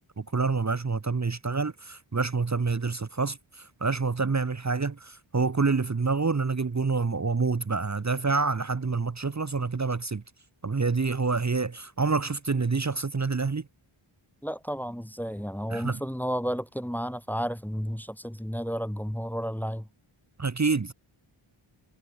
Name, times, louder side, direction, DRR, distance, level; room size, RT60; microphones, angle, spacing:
voice 1, 0.2-10.2 10.6-13.6 15.7-16.0 20.4-20.9, right 4 dB, 35° right, 1.2 m, -27 dB
voice 2, 14.4-19.9, equal, 5° left, 1.4 m, -32 dB
wide cardioid pair, 85°, 50 cm